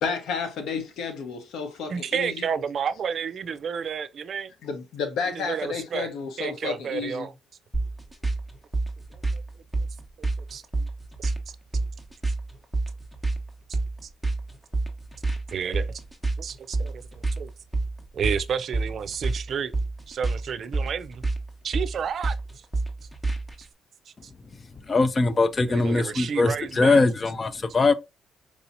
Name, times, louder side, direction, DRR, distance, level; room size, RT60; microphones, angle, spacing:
voice 1, 0.0-2.4 4.6-7.3, left 5 dB, 80° left, 1.1 m, -31 dB
voice 2, 1.9-4.5 5.3-7.3 9.1-9.4 10.2-10.6 11.2-11.3 15.5-16.0 16.4-17.5 18.1-19.7 20.1-21.2 21.6-22.3 23.6-23.7 24.1-24.2 25.7-27.1, right 7 dB, 55° right, 0.4 m, -31 dB
sound 1, 7.7-23.6, right 3 dB, ahead, 1.1 m, -29 dB
voice 3, 24.9-27.9, left 3 dB, 30° left, 0.5 m, -21 dB
4.7 x 2.8 x 2.6 m
cardioid pair, 90°, 0 cm